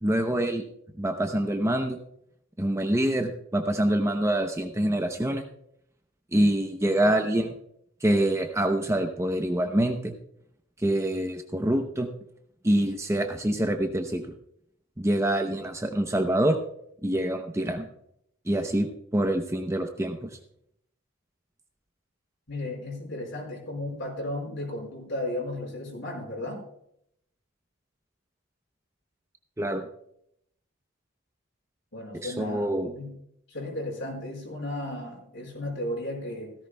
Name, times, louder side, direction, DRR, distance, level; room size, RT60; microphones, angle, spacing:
voice 1, 0.0-0.6 1.0-2.0 2.6-5.4 6.3-7.5 8.0-10.1 10.8-12.1 12.6-14.3 15.0-16.6 17.0-17.9 18.5-18.9 19.1-20.3 29.6-29.9 32.1-32.9, right 1 dB, 15° right, 5 dB, 0.6 m, -25 dB
voice 2, 22.5-26.6 31.9-33.1 33.5-36.5, left 1 dB, 55° left, -1 dB, 4.7 m, -34 dB
16.5 x 14.5 x 2.2 m, 0.73 s
head